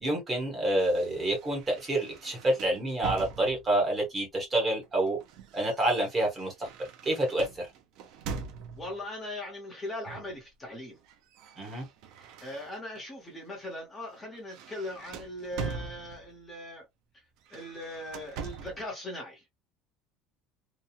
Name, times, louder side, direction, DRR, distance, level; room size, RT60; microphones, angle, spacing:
voice 1, 0.0-5.2 5.5-6.7 7.0-7.7 11.6-11.8, right 1 dB, 15° right, 1.1 m, -28 dB
sound 1, 0.8-3.9 4.8-9.0 10.1-10.4 10.7-13.0 13.5-13.7 14.1-16.5 17.4-18.9, right 5 dB, 50° right, 0.5 m, -43 dB
voice 2, 8.7-11.0 12.4-16.8 17.1-17.2 17.5-19.4, left 1 dB, 15° left, 0.9 m, -39 dB
2.9 x 2.3 x 2.3 m
cardioid pair, 180°, 0 cm